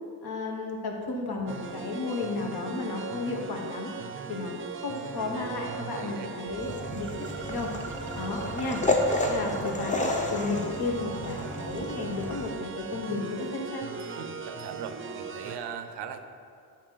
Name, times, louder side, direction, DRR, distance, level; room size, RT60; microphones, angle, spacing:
voice 1, 0.2-3.9 4.3-7.7 8.1-8.8 9.3-10.0 10.3-13.9, left 3 dB, 65° left, 1 dB, 1.1 m, -33 dB
sound 1, 1.5-15.6, right 5 dB, 30° right, 0.5 m, -39 dB
voice 2, 6.0-6.3 6.6-6.8 9.2-9.6 14.2-16.2, right 8 dB, 85° right, 8 dB, 0.6 m, -40 dB
sound 2, 6.5-12.5, left 2 dB, 20° left, 0.7 m, -31 dB
8.4 x 2.8 x 5.5 m, 2.3 s
cardioid pair, 80°, 41 cm